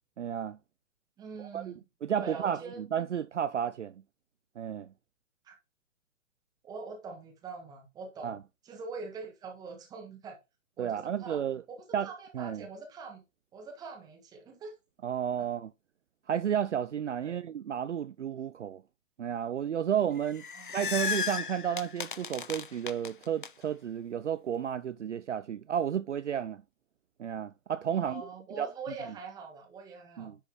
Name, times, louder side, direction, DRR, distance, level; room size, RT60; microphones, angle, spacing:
voice 1, 0.2-0.6 1.4-1.7 2.0-3.9 4.6-4.9 8.2-8.4 10.8-11.6 11.9-12.7 15.0-15.7 16.3-18.8 19.2-20.5 20.7-26.6 27.2-28.3 28.6-28.7 30.2-30.4, right 9 dB, 60° right, 0.5 m, -32 dB
voice 2, 1.2-1.7 2.2-2.8 5.4-5.5 6.6-8.4 8.6-10.4 10.8-11.4 11.7-13.2 13.5-14.7 17.2-17.4 20.5-20.7 27.9-30.3, right 4 dB, 10° right, 1.4 m, -43 dB
sound 1, 20.2-23.5, left 6 dB, 40° left, 0.4 m, -35 dB
9.9 x 4.4 x 3.5 m
figure-of-eight pair, 130°, 42 cm